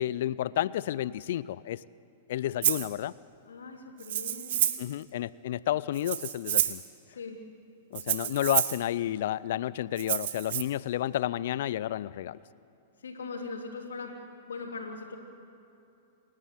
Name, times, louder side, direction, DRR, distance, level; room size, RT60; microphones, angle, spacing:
voice 1, 0.0-1.8 2.3-3.1 4.8-6.8 7.9-12.4, left 12 dB, 65° left, 20 dB, 0.4 m, -31 dB
Rattle (instrument), 2.6-2.9 4.0-4.9 5.9-6.9 7.9-8.8 10.0-10.6, right 12 dB, 65° right, 1.3 m, -29 dB
voice 2, 3.5-4.6 7.1-7.4 13.0-14.2 14.5-15.2, left 4 dB, 85° left, 2 dB, 3.0 m, -40 dB
28.5 x 11.0 x 9.3 m, 2.8 s
hypercardioid pair, 110°, 0 cm